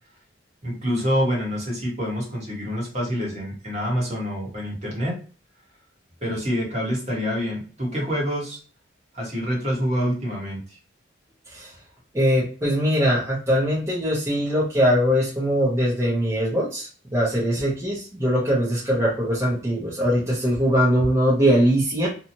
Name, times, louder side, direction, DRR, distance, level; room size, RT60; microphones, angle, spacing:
voice 1, 0.6-5.1 6.2-8.6 9.1-10.8, equal, 35° right, -3 dB, 1.2 m, -26 dB
voice 2, 12.1-22.1, equal, 15° right, -8 dB, 0.7 m, -21 dB
2.9 x 2.3 x 2.6 m, 0.39 s
head